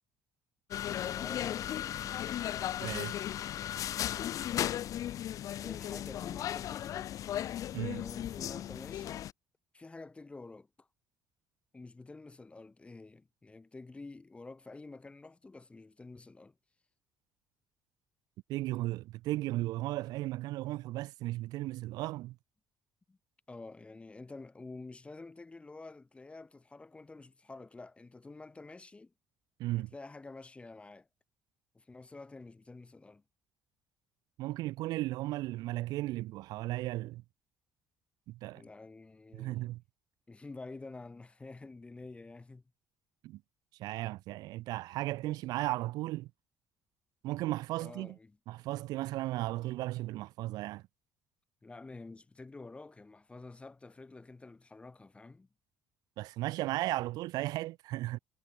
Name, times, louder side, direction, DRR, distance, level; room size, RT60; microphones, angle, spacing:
sound 1, 0.7-9.3, left 11 dB, 55° left, 0.5 m, -36 dB
voice 1, 0.8-2.4 5.6-7.1 8.0-9.3 9.7-10.9 11.7-16.5 23.1-23.2 23.5-29.1 29.7-31.1 31.7-33.2 38.5-39.7 40.3-42.6 47.8-48.4 51.6-55.5, left 3 dB, 15° left, 1.4 m, -49 dB
voice 2, 2.8-3.2 7.7-8.0 18.5-22.4 29.6-29.9 34.4-37.2 38.3-38.6 39.3-39.8 43.2-43.4 43.8-46.3 47.2-48.2 48.5-50.8 56.2-58.2, right 17 dB, 80° right, 1.1 m, -35 dB
cardioid pair, 105°, 7 cm